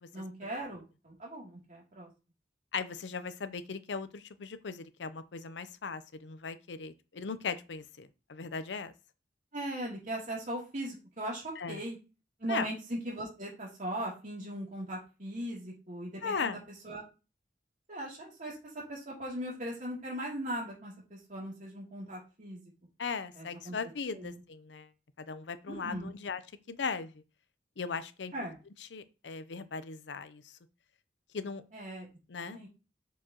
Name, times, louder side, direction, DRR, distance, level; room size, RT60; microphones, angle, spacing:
voice 1, 0.1-2.1 9.5-12.0 12.4-16.6 16.8-17.0 17.9-18.6 18.9-22.7 23.4-23.8 24.1-24.4 25.7-26.1 28.3-28.5 31.7-32.1 32.4-32.7, right 1 dB, 45° right, 2.8 m, -39 dB
voice 2, 2.7-8.9 11.6-11.8 12.5-12.7 16.2-16.6 23.0-24.9 25.2-26.4 26.7-27.2 27.8-28.3 28.8-30.6 31.3-31.6 32.3-32.6, left 5 dB, 90° left, 0.6 m, -38 dB
7.0 x 4.8 x 2.9 m
head